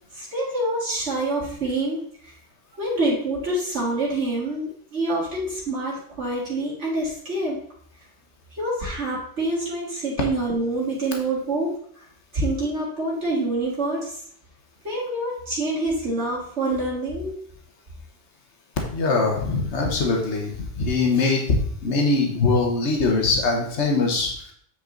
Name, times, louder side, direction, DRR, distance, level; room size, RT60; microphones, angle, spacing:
voice 1, 0.1-2.3 2.8-7.6 8.5-12.0 12.3-14.2 14.8-17.4, right 2 dB, 85° right, -6 dB, 2.3 m, -26 dB
voice 2, 18.9-24.5, left 3 dB, 80° left, 1 dB, 1.6 m, -22 dB
8.5 x 4.9 x 3.9 m, 0.62 s
omnidirectional pair, 1.2 m